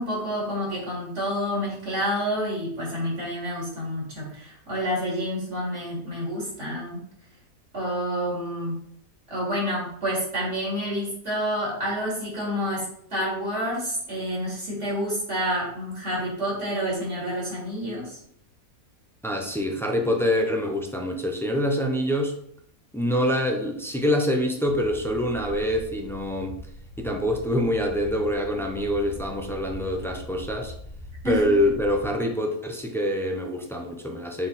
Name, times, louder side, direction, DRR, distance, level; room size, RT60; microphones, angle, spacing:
voice 1, 0.0-7.0 7.7-8.7 9.3-12.8 13.1-18.2 31.2-31.4, equal, 50° right, -5 dB, 3.1 m, -28 dB
voice 2, 19.2-22.3 22.9-26.6 27.0-30.7 31.2-34.5, equal, 5° left, 2 dB, 0.3 m, -25 dB
sound 1, 24.7-32.1, left 2 dB, 45° left, 1.2 m, -41 dB
6.7 x 3.8 x 4.1 m, 0.66 s
omnidirectional pair, 1.5 m